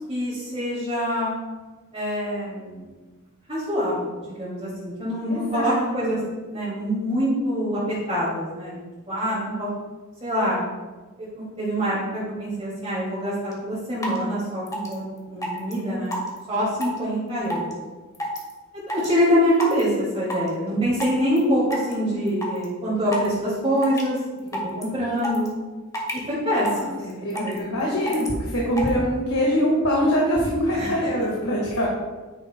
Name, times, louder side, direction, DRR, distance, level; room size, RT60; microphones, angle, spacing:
voice 1, 0.1-1.3 1.9-2.8 3.5-6.2 6.5-7.8 8.1-9.7 10.2-10.7 11.2-16.2 16.5-17.7 18.7-24.2 24.8-25.5 26.1-27.9 30.8-30.9, equal, 25° right, -8 dB, 2.4 m, -25 dB
voice 2, 5.3-6.2 26.6-31.9, equal, 80° left, -3 dB, 1.8 m, -24 dB
sound 1, 13.5-13.6 14.0-14.2 14.7-14.9 15.4-15.7 16.1-16.4 16.8-17.0 17.5-17.7 18.1-18.5 18.9-19.1 19.6-19.8 20.3-20.5 21.0-21.4 21.7-21.9 22.3-22.6 23.1-23.3 23.8-24.2 24.5-24.8 25.2-25.5 25.9-26.2 26.6-26.8 27.1-27.6 28.1-28.3 28.8-28.9, equal, 15° left, 1.7 m, -29 dB
9.8 x 9.6 x 2.3 m, 1.3 s
head